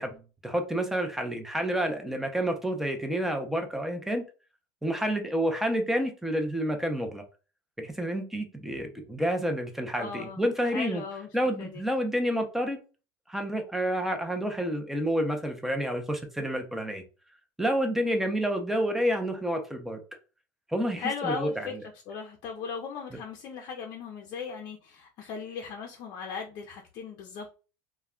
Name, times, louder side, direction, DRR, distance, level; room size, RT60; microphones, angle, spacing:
voice 1, 0.0-4.2 4.8-7.2 7.8-11.0 11.3-12.8 13.3-17.0 17.6-20.0 20.7-21.7, equal, 5° right, 0.6 m, -29 dB
voice 2, 10.0-11.3 11.6-11.8 21.0-21.7 22.1-27.5, left 6 dB, 55° left, 0.5 m, -37 dB
2.2 x 2.2 x 3.6 m
supercardioid pair, 100°, 10 cm